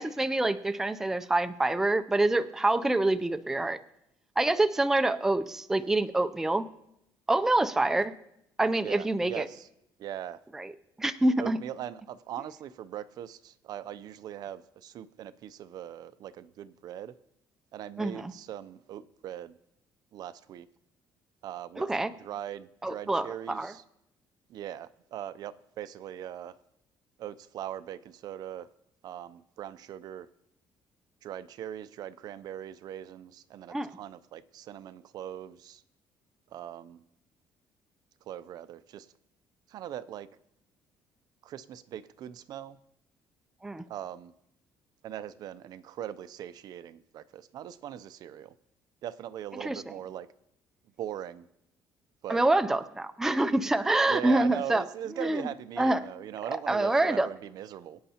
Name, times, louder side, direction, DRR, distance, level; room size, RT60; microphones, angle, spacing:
voice 1, 0.0-3.8 4.4-6.7 7.3-8.1 8.6-9.5 10.5-10.7 11.0-11.6 18.0-18.3 21.8-22.1 22.8-23.7 33.7-33.9 43.6-43.8 49.6-49.8 52.3-54.8 55.2-55.4 55.8-56.1 56.7-57.3, right 2 dB, 5° right, 9 dB, 0.4 m, -26 dB
voice 2, 8.8-9.7 10.0-10.4 11.4-17.1 17.7-19.5 20.1-20.7 21.4-21.9 22.2-23.8 24.5-26.5 27.2-28.7 29.0-30.3 31.2-35.8 36.5-37.0 38.3-39.1 39.7-40.3 41.4-42.8 43.9-44.3 45.0-48.5 49.0-50.3 51.0-51.5 52.2-52.4 54.1-58.0, right 11 dB, 55° right, 14 dB, 0.5 m, -40 dB
23.0 x 9.4 x 2.9 m, 0.80 s
cardioid pair, 160°, 8 cm